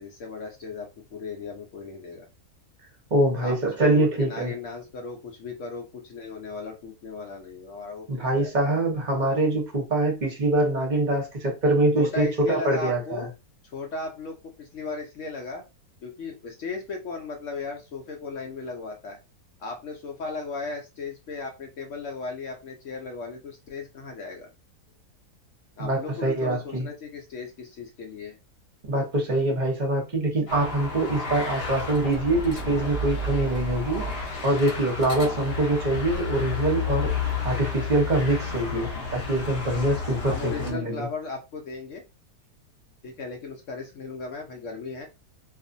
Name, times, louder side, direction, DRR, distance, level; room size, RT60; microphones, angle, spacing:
voice 1, 0.0-2.3 3.4-8.1 8.3-8.7 12.0-13.3 13.7-15.6 16.0-19.2 19.6-24.5 25.8-28.4 40.2-42.0 43.0-45.1, left 3 dB, 70° left, 0.7 m, -36 dB
voice 2, 3.1-4.5 8.1-13.3 25.8-26.9 28.9-41.1, right 2 dB, 35° right, 0.8 m, -24 dB
sound 1, 30.5-40.7, left 4 dB, 45° left, 0.9 m, -31 dB
2.5 x 2.4 x 2.5 m
omnidirectional pair, 1.8 m